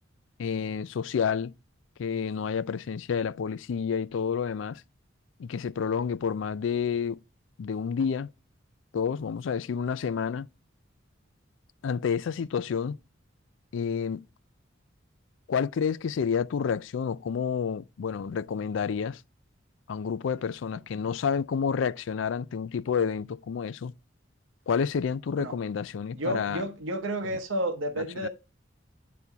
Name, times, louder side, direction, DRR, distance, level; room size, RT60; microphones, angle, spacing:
voice 1, 0.4-1.5 2.0-4.8 5.4-7.2 7.6-8.3 8.9-10.5 11.8-13.0 13.7-14.2 15.5-19.2 19.9-23.9 24.7-26.6 28.0-28.3, left 6 dB, 70° left, 0.4 m, -29 dB
voice 2, 26.1-28.3, right 1 dB, 80° right, 0.9 m, -31 dB
9.4 x 4.2 x 3.5 m
head